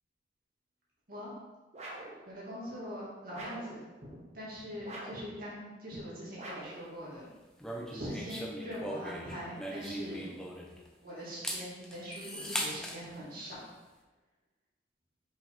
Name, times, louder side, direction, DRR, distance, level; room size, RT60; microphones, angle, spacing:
sound 1, 1.7-2.2 3.3-3.8 4.8-5.3 6.3-6.8, right 2 dB, 35° right, 1.0 m, -44 dB
voice 1, 2.3-7.3 7.9-10.4 11.0-13.6, equal, 50° right, -7 dB, 2.0 m, -42 dB
sound 2, 7.6-10.9 11.3-13.0, equal, 5° left, 0.6 m, -39 dB
5.9 x 5.2 x 3.5 m, 1.2 s
head